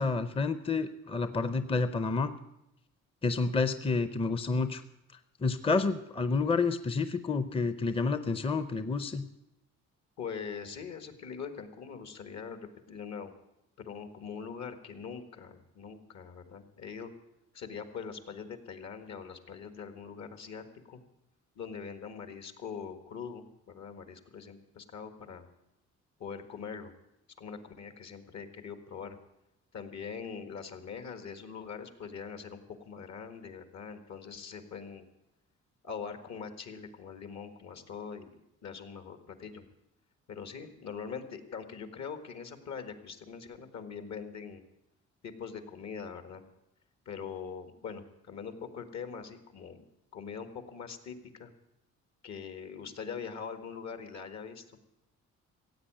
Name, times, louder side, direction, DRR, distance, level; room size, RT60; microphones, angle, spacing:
voice 1, 0.0-2.3 3.2-4.8 5.4-9.3, left 4 dB, 20° left, 12 dB, 0.6 m, -29 dB
voice 2, 10.2-13.3 13.8-17.1 17.5-21.0 21.5-25.5 26.2-26.9 27.4-29.2 29.7-35.1 35.8-39.6 40.3-44.6 45.2-46.4 47.0-49.9 50.1-51.5 52.2-54.8, left 6 dB, 65° left, 9 dB, 1.7 m, -42 dB
15.5 x 8.3 x 9.0 m, 0.87 s
cardioid pair, 90°, 30 cm